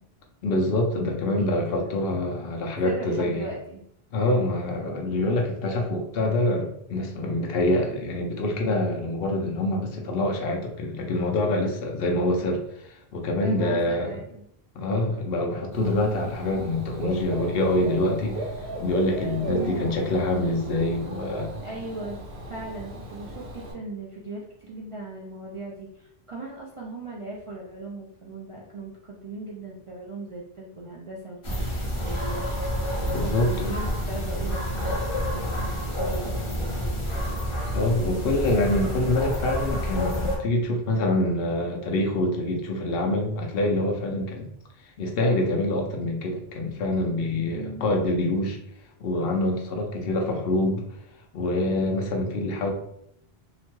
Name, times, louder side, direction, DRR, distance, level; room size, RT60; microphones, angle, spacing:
voice 1, 0.4-3.5 4.1-14.2 14.8-18.4 18.8-21.5 33.0-33.7 37.7-44.5 45.0-48.6 49.0-50.8 51.3-52.7, left 1 dB, 70° left, 1 dB, 0.8 m, -25 dB
voice 2, 1.3-1.9 2.8-3.8 13.4-14.4 19.5-19.9 21.6-22.2 22.4-31.7 32.0-32.4 33.2-36.9 47.6-47.9, right 2 dB, 50° right, -5 dB, 0.4 m, -38 dB
Dog / Bird, 15.7-23.7, right 1 dB, 75° right, 1.1 m, -36 dB
sound 1, 31.4-40.4, equal, 35° left, 0.6 m, -28 dB
2.8 x 2.1 x 3.0 m, 0.74 s
omnidirectional pair, 1.1 m